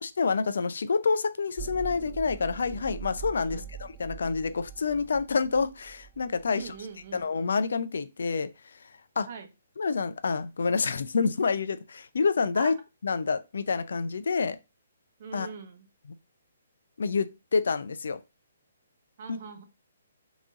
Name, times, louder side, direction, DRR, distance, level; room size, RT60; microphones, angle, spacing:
voice 1, 0.0-6.7 7.1-8.5 9.2-9.3 9.8-12.7 13.0-14.6 15.3-15.5 17.0-18.2 19.3-19.4, left 5 dB, 70° left, 0.4 m, -28 dB
sound 1, 1.6-7.0, right 9 dB, 15° right, 0.4 m, -43 dB
voice 2, 6.5-7.3 9.3-9.5 12.5-12.7 15.2-15.9 19.2-19.6, right 5 dB, 50° right, 0.9 m, -42 dB
3.6 x 3.0 x 3.7 m
figure-of-eight pair, 135°, 0 cm